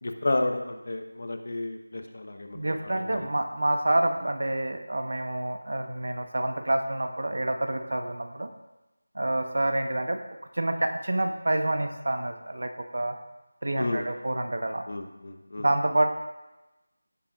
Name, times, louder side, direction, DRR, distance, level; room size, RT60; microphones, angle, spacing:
voice 1, 0.0-3.3 13.8-14.1 14.9-15.7, left 2 dB, 45° left, 6 dB, 0.9 m, -31 dB
voice 2, 2.5-8.5 9.1-10.2 10.5-13.2 13.6-14.8 15.6-16.1, right 1 dB, 60° right, 6 dB, 1.0 m, -28 dB
16.5 x 6.6 x 2.5 m, 1.0 s
figure-of-eight pair, 175°, 0 cm